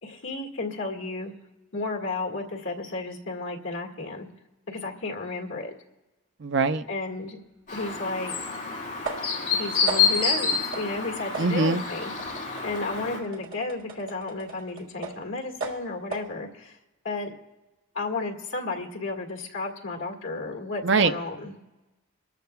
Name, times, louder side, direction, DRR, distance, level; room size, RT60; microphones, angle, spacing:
voice 1, 0.0-1.3 1.7-4.3 4.7-5.7 6.9-7.4 7.7-8.4 9.5-12.1 12.6-16.8 17.0-17.4 17.9-21.5, left 3 dB, 70° left, 1 dB, 1.9 m, -33 dB
voice 2, 6.4-6.9 11.4-11.8 20.8-21.1, right 4 dB, 55° right, 9 dB, 0.6 m, -22 dB
Chirp tweet, 7.7-13.2, left 6 dB, 40° left, 3.7 m, -28 dB
sound 1, 7.9-8.0 9.0-9.5 9.9-10.3 10.7-11.0 11.3-15.3 15.6-16.4, right 4 dB, 75° right, 1.7 m, -37 dB
24.0 x 13.5 x 2.3 m, 1.1 s
head